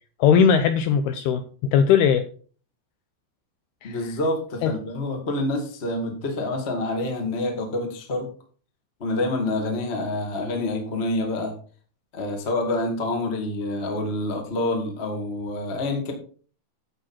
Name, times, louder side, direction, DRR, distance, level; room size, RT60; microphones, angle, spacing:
voice 1, 0.2-2.2 3.8-4.0 4.6-4.7, left 7 dB, 80° left, 9 dB, 2.3 m, -19 dB
voice 2, 3.8-8.3 9.0-11.5 12.1-16.1, left 2 dB, 35° left, 3 dB, 1.0 m, -27 dB
11.0 x 7.9 x 4.3 m, 0.41 s
omnidirectional pair, 5.1 m